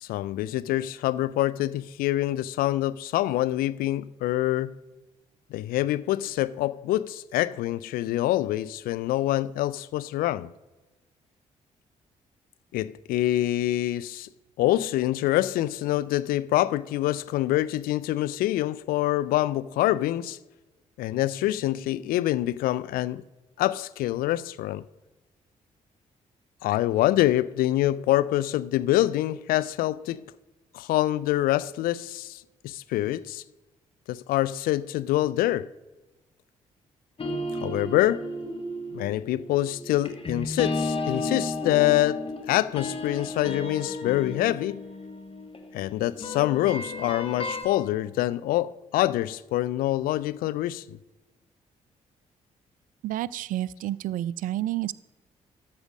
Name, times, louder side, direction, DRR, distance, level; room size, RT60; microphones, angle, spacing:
voice 1, 0.0-4.7 5.5-10.5 12.7-14.3 14.6-20.4 21.0-23.2 23.6-24.8 26.6-30.2 30.7-33.4 34.1-35.7 37.6-38.3 38.9-44.8 45.7-50.8, left 15 dB, 55° left, 0.4 m, -26 dB
sound 1, 37.2-47.6, left 2 dB, 30° left, 1.5 m, -33 dB
voice 2, 53.0-54.9, right 14 dB, 50° right, 0.4 m, -30 dB
13.0 x 4.9 x 6.2 m
figure-of-eight pair, 40°, 17 cm